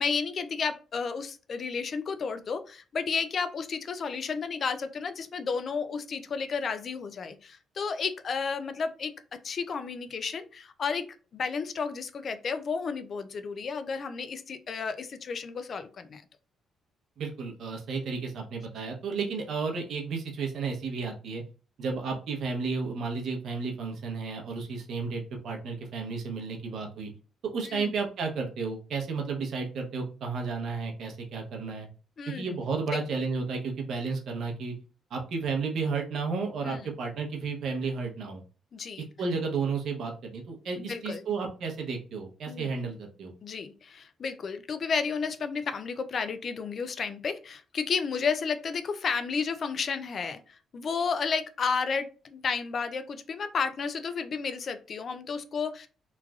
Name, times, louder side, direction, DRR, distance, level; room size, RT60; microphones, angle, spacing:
voice 1, 0.0-9.1 9.4-11.0 11.3-16.2 27.6-27.9 32.2-32.6 36.6-36.9 38.7-39.1 40.8-41.2 42.5-42.7 43.4-55.9, left 5 dB, 50° left, 10 dB, 0.4 m, -32 dB
voice 2, 17.2-21.4 21.8-27.1 27.5-31.9 32.3-34.8 35.1-38.4 39.2-43.3, right 4 dB, 70° right, 2 dB, 0.7 m, -32 dB
3.1 x 2.4 x 2.3 m, 0.35 s
cardioid pair, 90°, 0 cm